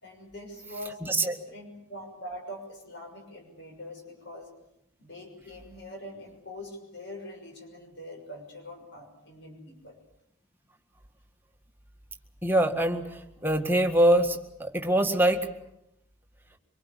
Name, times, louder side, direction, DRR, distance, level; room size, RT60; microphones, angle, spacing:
voice 1, 0.0-4.5 5.0-10.0, left 1 dB, 55° left, 2 dB, 6.3 m, -43 dB
voice 2, 1.0-1.3 12.4-15.4, right 1 dB, 10° right, 4 dB, 1.8 m, -24 dB
25.0 x 23.0 x 8.4 m, 0.82 s
head